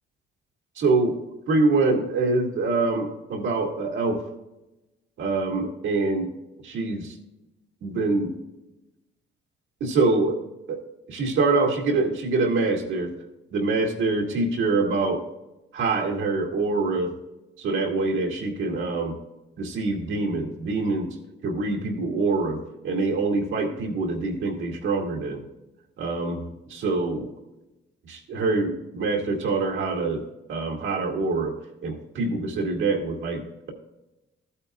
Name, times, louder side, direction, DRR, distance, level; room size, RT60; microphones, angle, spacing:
voice 1, 0.8-1.2 1.5-4.2 5.2-6.3 6.6-7.1 7.8-8.3 9.8-10.4 10.7-10.8 11.1-13.1 13.5-15.2 15.7-17.1 17.6-19.2 19.6-21.1 21.4-22.6 22.8-25.4 26.0-26.4 26.7-27.3 28.1-30.2 30.5-31.5 31.8-33.7, right 3 dB, 80° right, 0 dB, 2.1 m, -25 dB
14.5 x 8.6 x 2.4 m, 0.99 s
cardioid pair, 90°, 20 cm